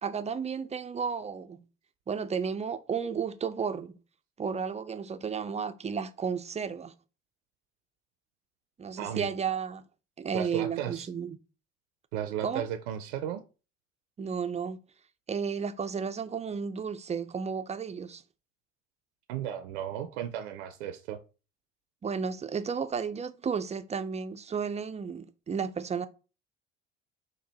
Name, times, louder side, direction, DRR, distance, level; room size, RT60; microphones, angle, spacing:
voice 1, 0.0-1.6 2.1-3.9 4.4-6.9 8.8-9.8 10.2-11.4 12.4-12.6 14.2-14.8 15.3-18.2 22.0-26.1, right 6 dB, 20° right, 0.4 m, -33 dB
voice 2, 9.0-9.3 10.3-11.1 12.1-13.4 19.3-21.2, right 10 dB, 75° right, 0.6 m, -35 dB
4.4 x 2.6 x 4.0 m
hypercardioid pair, 60°, 34 cm